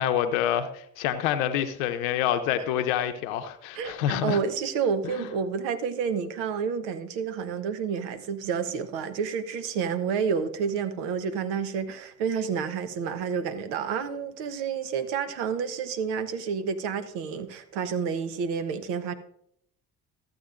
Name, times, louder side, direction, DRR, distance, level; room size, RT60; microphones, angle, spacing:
voice 1, 0.0-4.4 5.0-5.3, left 10 dB, 80° left, 0.7 m, -27 dB
voice 2, 3.7-19.1, right 6 dB, 75° right, 0.9 m, -29 dB
14.5 x 7.9 x 2.5 m
hypercardioid pair, 50°, 41 cm